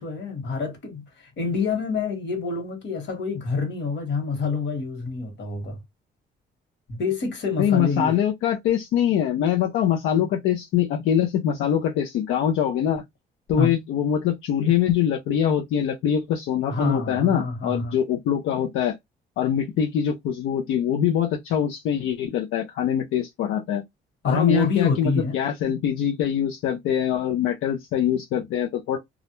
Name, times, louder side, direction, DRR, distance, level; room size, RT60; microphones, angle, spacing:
voice 1, 0.0-5.8 6.9-8.1 13.6-13.7 16.7-18.0 24.2-25.4, left 4 dB, 65° left, 1.4 m, -27 dB
voice 2, 7.6-13.0 13.5-19.0 19.4-23.8 24.3-29.0, left 9 dB, 90° left, 0.6 m, -23 dB
2.4 x 2.0 x 2.9 m
cardioid pair, 90°, 20 cm